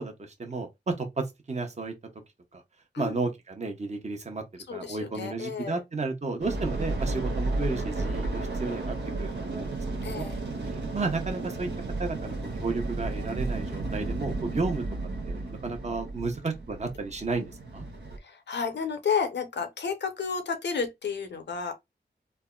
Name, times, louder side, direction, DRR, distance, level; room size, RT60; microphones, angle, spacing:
voice 1, 0.0-1.9 2.5-2.6 3.0-4.4 4.7-9.8 10.1-10.2 10.6-11.7 12.0-14.8 15.3-17.9, right 3 dB, 40° right, 0.8 m, -33 dB
voice 2, 4.7-5.8 10.0-10.4 18.2-21.8, left 6 dB, 90° left, 0.7 m, -31 dB
sound 1, 6.4-18.2, right 2 dB, 85° right, 0.8 m, -33 dB
3.3 x 2.1 x 2.3 m
cardioid pair, 50°, 17 cm